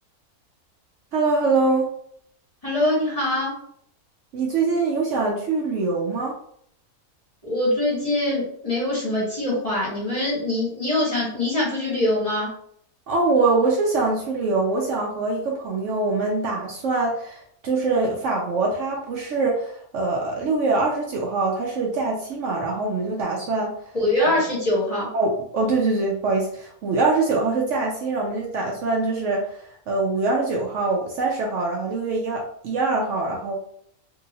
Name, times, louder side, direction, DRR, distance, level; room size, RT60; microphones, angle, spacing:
voice 1, 1.1-1.9 4.3-6.3 13.1-23.7 25.1-33.6, right 3 dB, 65° right, -1 dB, 0.8 m, -23 dB
voice 2, 2.6-3.5 7.4-12.5 23.9-25.1, left 1 dB, 30° left, -6 dB, 0.9 m, -23 dB
2.7 x 2.6 x 2.7 m, 0.67 s
omnidirectional pair, 1.5 m